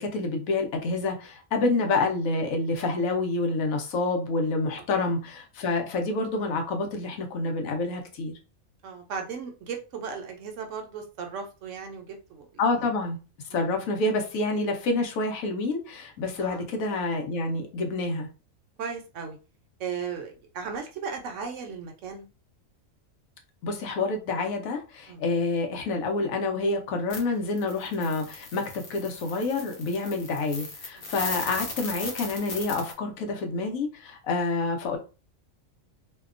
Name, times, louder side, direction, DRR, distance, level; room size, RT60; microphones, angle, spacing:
voice 1, 0.0-8.3 12.6-13.2 13.5-18.3 23.6-35.0, left 3 dB, 80° left, 3 dB, 1.0 m, -28 dB
voice 2, 8.8-12.9 13.5-13.7 16.4-16.6 18.8-19.4 19.8-22.3 25.1-25.2 30.0-30.1 31.0-31.1, right 6 dB, 70° right, 4 dB, 0.9 m, -36 dB
sound 1, 27.1-27.2 27.5-32.9, left 3 dB, 45° left, 0.7 m, -37 dB
2.7 x 2.1 x 2.4 m, 0.33 s
omnidirectional pair, 1.4 m